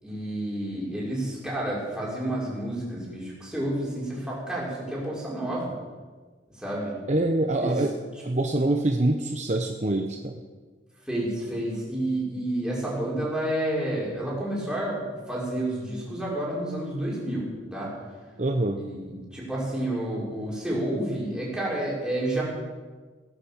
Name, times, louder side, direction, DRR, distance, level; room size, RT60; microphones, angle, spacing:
voice 1, 0.0-5.7 6.6-6.9 7.6-7.8 11.1-17.9 18.8-22.4, right 1 dB, 5° right, -6 dB, 5.6 m, -30 dB
voice 2, 7.1-7.9 8.2-10.4 18.4-18.8, right 2 dB, 40° right, 4 dB, 0.9 m, -25 dB
18.5 x 10.5 x 7.2 m, 1.4 s
head